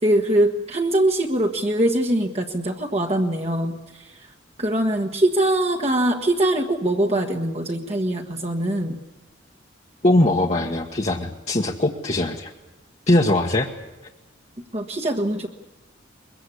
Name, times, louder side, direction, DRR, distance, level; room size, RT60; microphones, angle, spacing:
voice 1, 0.0-4.3 4.6-9.0 14.7-15.5, right 1 dB, 35° right, 1 dB, 1.5 m, -22 dB
voice 2, 10.0-12.5 13.1-13.7, left 1 dB, 35° left, -1 dB, 1.4 m, -20 dB
23.0 x 22.5 x 8.4 m, 1.0 s
head